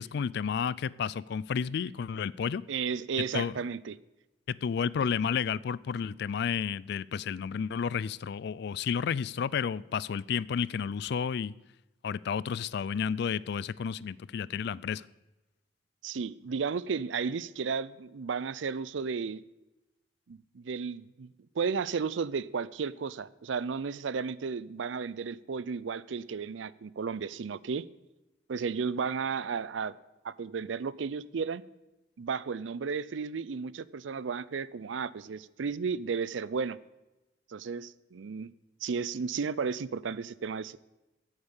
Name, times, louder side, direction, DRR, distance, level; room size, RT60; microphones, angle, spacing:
voice 1, 0.0-2.6 3.3-3.5 4.5-11.5 12.0-15.0, left 7 dB, 65° left, 21 dB, 0.3 m, -31 dB
voice 2, 2.7-4.0 16.0-19.4 20.3-21.3 21.5-27.8 28.5-29.9 30.2-31.6 32.2-36.8 37.5-38.5 38.8-40.8, right 5 dB, 85° right, 19 dB, 0.5 m, -33 dB
8.8 x 8.1 x 8.2 m, 1.0 s
head